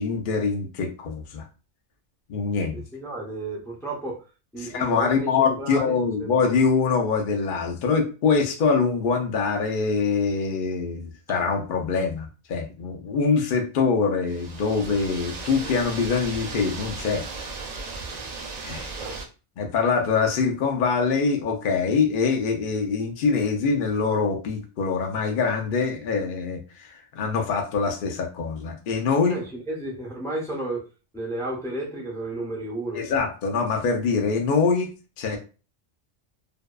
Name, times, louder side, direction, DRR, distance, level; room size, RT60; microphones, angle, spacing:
voice 1, 0.0-1.4 2.3-2.8 4.6-17.2 18.6-18.9 19.6-29.4 32.9-35.4, left 5 dB, 60° left, 2 dB, 0.6 m, -24 dB
voice 2, 2.7-4.3 4.5-6.6 19.0-19.2 29.3-30.9 31.1-33.1 35.3-35.4, right 2 dB, 5° left, -2 dB, 0.4 m, -33 dB
sound 1, 14.3-19.3, right 3 dB, 75° right, 0.3 m, -36 dB
2.6 x 2.2 x 2.3 m, 0.33 s
omnidirectional pair, 1.3 m